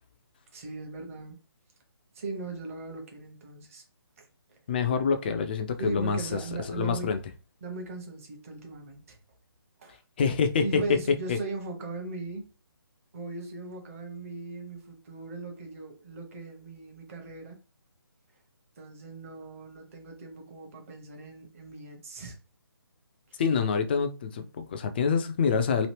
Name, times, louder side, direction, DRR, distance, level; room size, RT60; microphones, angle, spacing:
voice 1, 0.5-1.3 2.1-3.8 4.5-4.6 5.8-7.1 7.6-9.2 9.8-10.0 10.6-12.5 13.1-17.6 18.8-22.4 23.3-23.4, right 3 dB, 35° right, 0.9 m, -39 dB
voice 2, 4.7-6.4 6.7-7.2 10.2-11.4 23.4-25.9, left 5 dB, 25° left, 0.3 m, -26 dB
2.9 x 2.4 x 3.2 m
figure-of-eight pair, 145°, 13 cm